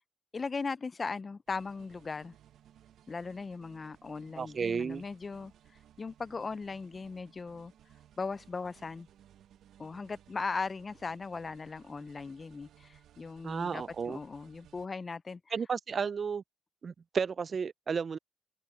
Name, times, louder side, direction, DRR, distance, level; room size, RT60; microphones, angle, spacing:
voice 1, 0.3-2.3 3.1-5.5 6.0-7.7 8.2-9.1 9.8-15.4, left 4 dB, 30° left, 0.4 m, -38 dB
sound 1, 1.5-14.9, right 10 dB, 75° right, 0.9 m, -61 dB
voice 2, 4.4-5.0 13.4-14.2 15.5-16.4 16.8-18.2, right 6 dB, 45° right, 0.3 m, -33 dB
cardioid pair, 90°, 0 cm